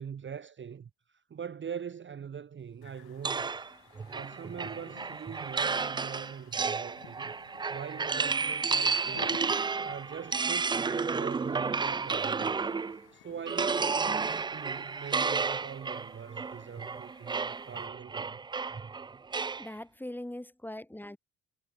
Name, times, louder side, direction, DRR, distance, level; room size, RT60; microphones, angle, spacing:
voice 1, 0.0-3.6 4.1-7.3 7.7-9.4 9.8-12.7 13.1-18.4, right 7 dB, 30° right, 1.2 m, -43 dB
sound 1, 2.8-17.9, left 15 dB, 70° left, 2.4 m, -55 dB
sound 2, 3.2-13.0 13.5-19.7, right 4 dB, 15° right, 0.3 m, -32 dB
voice 2, 19.6-21.2, left 1 dB, 5° left, 2.9 m, -41 dB
cardioid pair, 135°, 38 cm